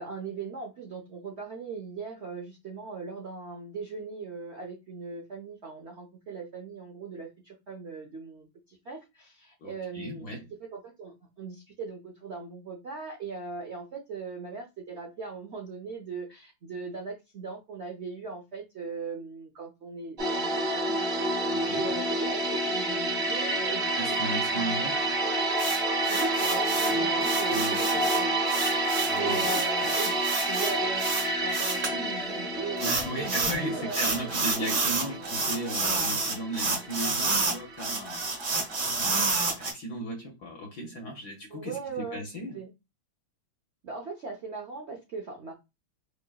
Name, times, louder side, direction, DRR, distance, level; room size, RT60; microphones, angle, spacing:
voice 1, 0.0-25.3 26.1-28.3 29.2-30.2 30.4-31.1 31.4-34.8 41.5-42.3 42.5-42.7 43.8-45.5, right 4 dB, 75° right, 0.6 m, -39 dB
voice 2, 9.6-10.5 21.5-21.8 23.9-25.1 27.5-28.1 29.1-29.5 32.8-38.3 38.5-42.6, right 1 dB, 60° left, 1.2 m, -36 dB
sound 1, 20.2-39.0 39.3-39.5, right 2 dB, 35° right, 0.9 m, -29 dB
sound 2, 25.6-31.9 32.8-33.6 33.9-39.7, right 3 dB, 50° right, 1.1 m, -30 dB
4.6 x 2.5 x 2.3 m
omnidirectional pair, 2.1 m